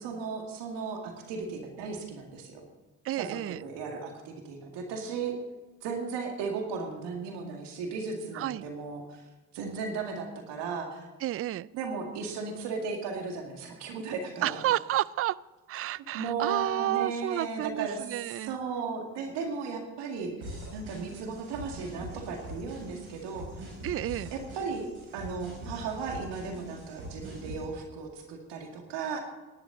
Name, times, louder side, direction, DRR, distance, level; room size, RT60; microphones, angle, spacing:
voice 1, 0.0-2.7 3.1-5.3 5.8-9.3 9.5-11.1 11.7-14.6 16.1-23.7 24.3-24.9 25.1-29.2, right 5 dB, 75° right, 3 dB, 2.2 m, -36 dB
voice 2, 3.0-3.6 8.3-8.6 11.2-11.7 14.4-15.4 15.7-18.6 23.8-24.3, right 13 dB, 35° right, 22 dB, 0.4 m, -30 dB
sound 1, 20.4-27.7, right 1 dB, 90° right, 5.5 m, -43 dB
18.0 x 11.0 x 3.9 m, 1.2 s
hypercardioid pair, 55°, 42 cm